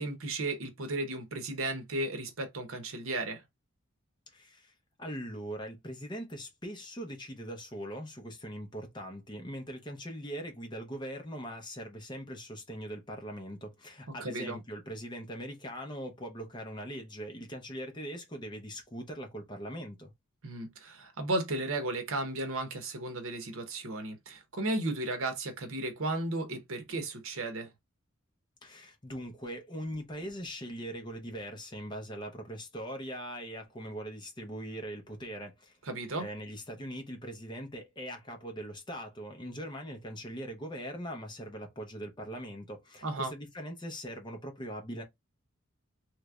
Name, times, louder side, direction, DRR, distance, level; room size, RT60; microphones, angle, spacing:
voice 1, 0.0-3.4 14.2-14.6 20.4-27.7 35.8-36.3 43.0-43.3, right 2 dB, 80° right, 0.9 m, -34 dB
voice 2, 4.3-4.7 5.0-20.1 28.6-35.8 36.2-45.0, equal, 20° left, 0.7 m, -41 dB
3.2 x 3.1 x 2.3 m
head